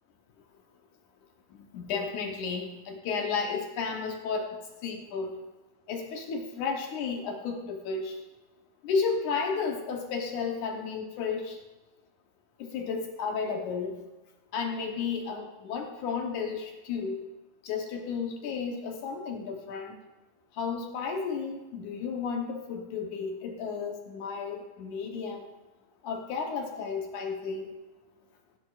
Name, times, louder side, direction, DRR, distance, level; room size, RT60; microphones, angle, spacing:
voice 1, 1.5-5.4 5.9-8.2 8.8-11.6 12.6-14.0 14.5-17.2 17.6-20.0 20.5-25.5 26.0-27.7, left 5 dB, 70° left, 2 dB, 2.0 m, -33 dB
16.5 x 11.0 x 2.4 m, 1.1 s
omnidirectional pair, 4.3 m